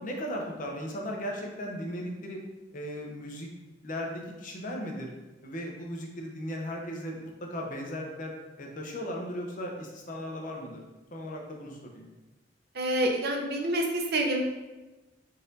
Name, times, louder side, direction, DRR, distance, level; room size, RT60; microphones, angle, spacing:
voice 1, 0.0-2.4 2.7-3.5 3.8-5.1 5.4-10.8 11.1-12.1, equal, 45° left, 0 dB, 0.7 m, -37 dB
voice 2, 12.7-14.4, right 1 dB, 60° right, 2 dB, 0.6 m, -27 dB
4.0 x 2.5 x 3.9 m, 1.1 s
head